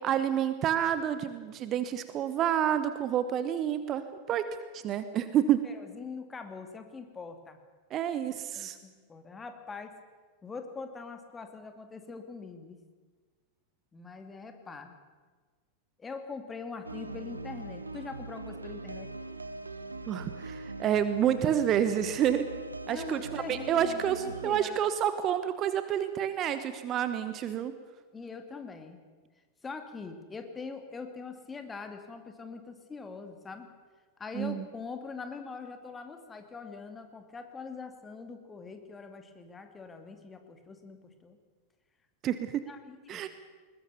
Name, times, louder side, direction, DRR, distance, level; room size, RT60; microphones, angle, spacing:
voice 1, 0.0-4.5 4.7-5.6 7.9-8.8 20.1-22.5 22.9-27.7 34.3-34.6 42.2-42.6 43.1-43.3, right 10 dB, 30° right, 11 dB, 1.2 m, -29 dB
voice 2, 5.6-7.6 8.5-9.9 10.4-12.8 13.9-15.0 16.0-19.1 22.9-24.9 28.1-29.0 29.6-33.7 34.2-41.4 42.7-43.2, left 4 dB, 15° left, 7 dB, 2.5 m, -43 dB
sound 1, 16.8-24.6, right 3 dB, 80° right, 1.1 m, -41 dB
21.0 x 21.0 x 6.9 m, 1.4 s
figure-of-eight pair, 90°, 0 cm